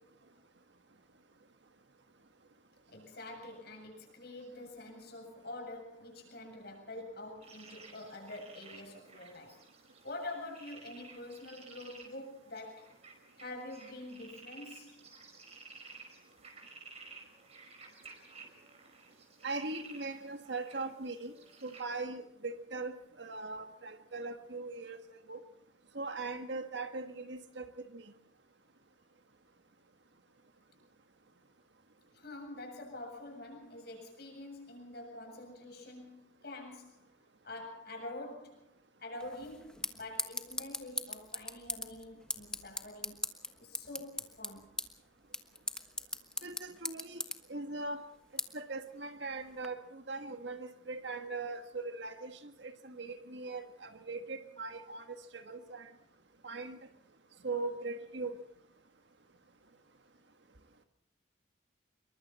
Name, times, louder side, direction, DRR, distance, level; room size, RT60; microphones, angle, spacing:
voice 1, 2.9-9.6 10.0-12.9 13.4-15.0 32.1-37.0 37.4-38.7 39.0-43.3 43.6-44.7, left 2 dB, 50° left, 2 dB, 7.8 m, -46 dB
sound 1, 7.4-21.8, right 4 dB, 30° right, 5.3 m, -54 dB
voice 2, 19.4-21.3 21.6-25.0 25.3-25.4 25.9-28.1 46.4-47.2 47.5-48.0 48.5-55.9 56.4-56.8 57.4-58.4, right 3 dB, 60° right, 7 dB, 1.6 m, -40 dB
sound 2, 39.2-49.7, left 1 dB, 5° left, 1.2 m, -42 dB
27.0 x 23.0 x 4.3 m, 0.71 s
head